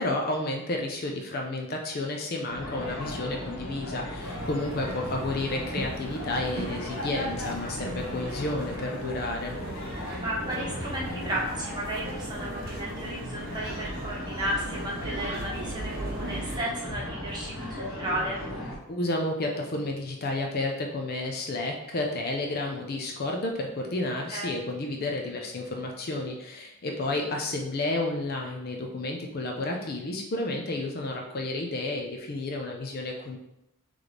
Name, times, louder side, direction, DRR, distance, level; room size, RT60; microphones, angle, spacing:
voice 1, 0.0-9.6 18.9-33.4, left 2 dB, 45° left, 1 dB, 0.5 m, -31 dB
sound 1, 2.5-18.8, left 1 dB, 65° left, 1.0 m, -37 dB
sound 2, 4.2-16.6, right 2 dB, 40° right, 0.6 m, -39 dB
voice 2, 10.2-18.4 24.3-24.5 27.1-27.2, right 1 dB, 20° right, -5 dB, 0.9 m, -33 dB
3.3 x 3.2 x 3.9 m, 0.86 s
head